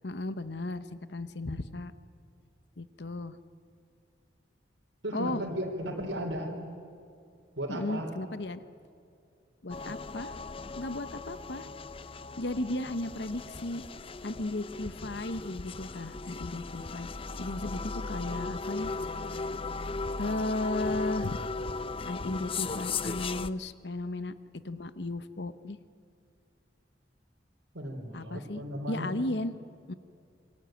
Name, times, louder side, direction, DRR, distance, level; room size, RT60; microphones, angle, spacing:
voice 1, 0.0-1.9 2.8-3.4 5.1-5.4 7.7-8.6 9.6-10.3 10.7-11.7 12.4-13.8 14.2-17.1 17.4-18.9 19.3-19.5 20.2-21.4 22.1-25.8 28.1-29.5 29.9-30.0, left 2 dB, 70° left, 13 dB, 1.0 m, -35 dB
voice 2, 5.0-6.5 7.6-8.1 27.7-29.1, equal, 85° right, -2 dB, 4.2 m, -35 dB
sound 1, 9.7-23.5, left 3 dB, 30° left, 0.6 m, -37 dB
28.0 x 23.0 x 9.2 m, 2.4 s
head